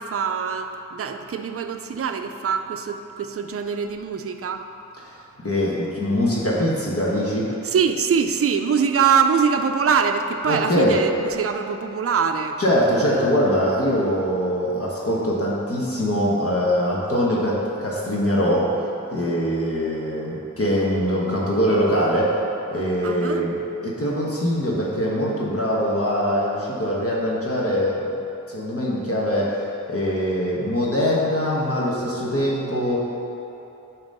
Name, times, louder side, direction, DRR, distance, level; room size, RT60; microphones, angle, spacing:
voice 1, 0.0-4.6 7.6-12.6 23.0-23.5, right 6 dB, 45° right, 6 dB, 0.4 m, -23 dB
voice 2, 5.4-7.5 10.5-11.0 12.6-18.7 19.1-22.3 22.7-23.5 23.8-28.1 28.5-29.6 29.9-33.0, equal, 45° left, -5 dB, 1.1 m, -22 dB
8.7 x 3.0 x 5.3 m, 2.9 s
wide cardioid pair, 60°, 31 cm